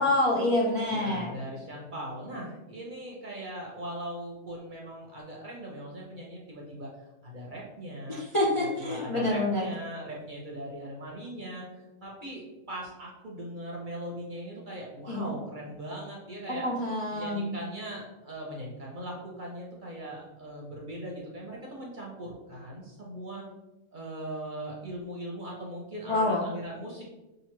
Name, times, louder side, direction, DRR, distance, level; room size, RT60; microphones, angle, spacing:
voice 1, 0.0-1.3 8.1-9.7 15.1-15.3 16.5-17.5 26.1-26.5, left 1 dB, 40° left, -5 dB, 0.4 m, -27 dB
voice 2, 0.9-6.9 7.2-8.2 8.6-11.6 12.0-12.4 12.7-16.7 17.1-23.4 23.9-27.0, right 1 dB, 40° right, -3 dB, 0.9 m, -39 dB
6.3 x 2.6 x 3.0 m, 1.0 s
omnidirectional pair, 1.6 m